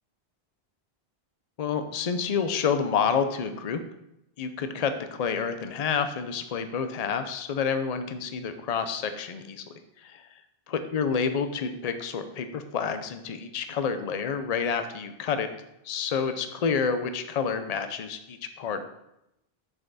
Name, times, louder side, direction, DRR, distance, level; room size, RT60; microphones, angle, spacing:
voice 1, 1.6-3.8 4.4-9.6 10.0-10.2 10.9-15.5 15.9-18.8, left 6 dB, 45° left, 9 dB, 0.6 m, -29 dB
7.2 x 5.7 x 4.0 m, 0.84 s
omnidirectional pair, 1.0 m